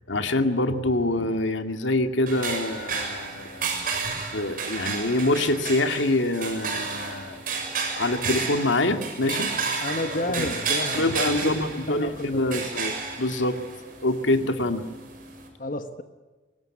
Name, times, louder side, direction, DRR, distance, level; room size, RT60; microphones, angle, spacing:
voice 1, 0.1-3.7 4.3-7.4 8.0-9.5 10.4-10.5 10.9-13.6 14.0-14.8, left 2 dB, 85° left, 2.3 m, -25 dB
sound 1, 2.3-15.5, right 4 dB, 45° right, 6.5 m, -32 dB
voice 2, 9.8-12.7 15.6-16.0, left 1 dB, 45° left, 1.2 m, -31 dB
25.0 x 21.0 x 9.9 m
head